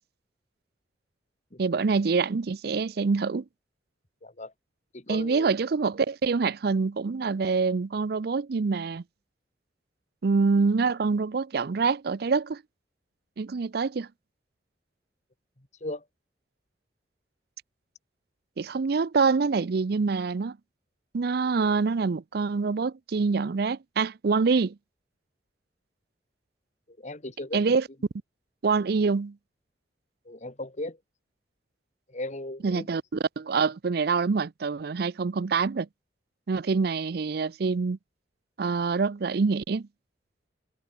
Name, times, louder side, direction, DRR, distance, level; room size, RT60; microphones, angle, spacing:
voice 1, 1.6-3.4 5.1-9.0 10.2-12.6 13.4-14.1 18.6-20.6 21.1-24.8 27.5-27.8 28.6-29.4 32.6-35.9 36.5-38.0 38.6-39.9, right 4 dB, 60° right, 0.5 m, -25 dB
voice 2, 4.2-4.5 4.9-5.5 15.8-16.0 26.9-27.6 30.3-31.0 32.1-32.9, left 1 dB, 40° left, 2.4 m, -37 dB
head